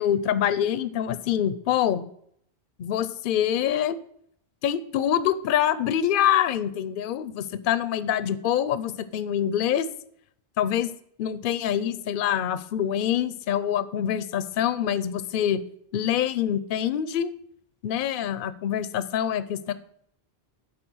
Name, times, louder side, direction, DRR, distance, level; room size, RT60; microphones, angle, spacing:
voice 1, 0.0-2.1 2.8-4.0 4.6-9.9 10.6-10.9 11.2-15.6 15.9-17.3 17.8-19.7, left 10 dB, 60° left, 15 dB, 0.7 m, -25 dB
8.7 x 4.7 x 6.2 m, 0.68 s
omnidirectional pair, 1.1 m